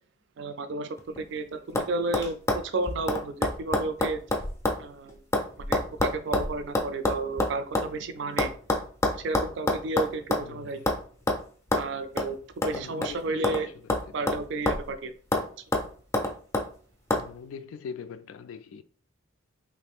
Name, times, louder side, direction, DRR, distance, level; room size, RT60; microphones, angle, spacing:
voice 1, 0.4-2.4 2.6-4.2 4.8-5.2 5.6-8.5 9.1-10.8 11.7-12.4 12.6-13.7 14.1-15.1, right 3 dB, 60° right, 0.4 m, -32 dB
sound 1, 1.0-1.4 1.7-1.9 2.1-4.8 5.1-7.9 8.4-10.5 10.9-11.0 11.3-11.4 11.7-11.9 12.2-12.3 12.6-13.6 13.9-14.9 15.3-15.5 15.7-16.7 17.1-17.2, left 1 dB, 15° left, 0.5 m, -27 dB
voice 2, 10.4-10.8 12.7-13.7 14.2-14.3 17.1-18.8, left 6 dB, 80° left, 0.3 m, -42 dB
3.2 x 2.5 x 3.4 m
head